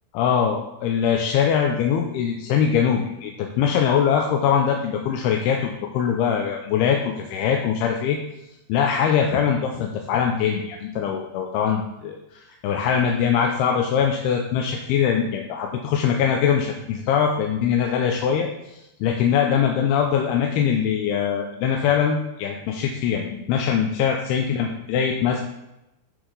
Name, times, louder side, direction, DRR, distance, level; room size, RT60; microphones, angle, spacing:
voice 1, 0.1-8.2 8.7-25.4, left 7 dB, 85° left, 2 dB, 2.3 m, -22 dB
9.9 x 5.0 x 3.9 m, 0.90 s
omnidirectional pair, 5.2 m